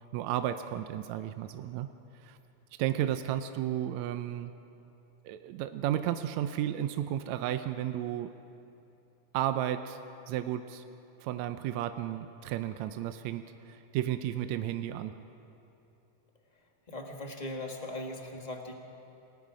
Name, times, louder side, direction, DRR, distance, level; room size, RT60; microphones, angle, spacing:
voice 1, 0.1-1.9 2.2-2.4 2.8-4.5 5.3-8.3 9.3-10.0 10.3-10.8 11.2-15.1, right 11 dB, 75° right, 9 dB, 1.7 m, -33 dB
voice 2, 16.9-18.7, left 1 dB, 20° left, 1 dB, 1.1 m, -39 dB
28.5 x 19.0 x 5.0 m, 2.9 s
omnidirectional pair, 3.6 m